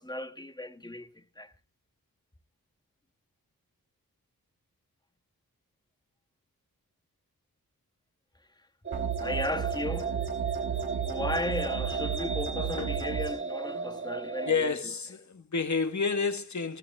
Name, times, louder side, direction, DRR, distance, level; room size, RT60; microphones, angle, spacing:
voice 1, 0.0-1.5 9.2-10.2 10.8-14.8, left 1 dB, 10° left, 1.3 m, -35 dB
sound 1, 8.8-14.6, right 5 dB, 30° right, 1.1 m, -34 dB
sound 2, 8.9-13.3, right 9 dB, 90° right, 4.1 m, -34 dB
voice 2, 14.5-16.8, left 5 dB, 50° left, 1.7 m, -29 dB
13.5 x 13.5 x 3.6 m
cardioid pair, 60°, 37 cm